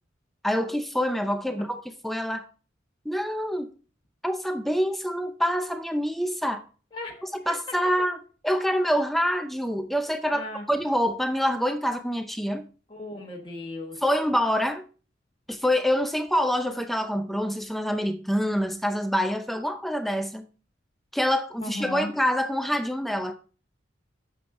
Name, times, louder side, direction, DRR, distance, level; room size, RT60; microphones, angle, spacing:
voice 1, 0.4-2.4 3.0-3.7 4.2-6.6 7.5-8.2 8.4-12.6 14.0-14.8 15.5-20.4 21.1-23.3, equal, ahead, 0.6 m, -26 dB
voice 2, 6.9-7.3 10.3-10.7 12.9-14.0 21.6-22.1, left 2 dB, 25° left, 1.2 m, -36 dB
9.2 x 7.1 x 3.6 m
head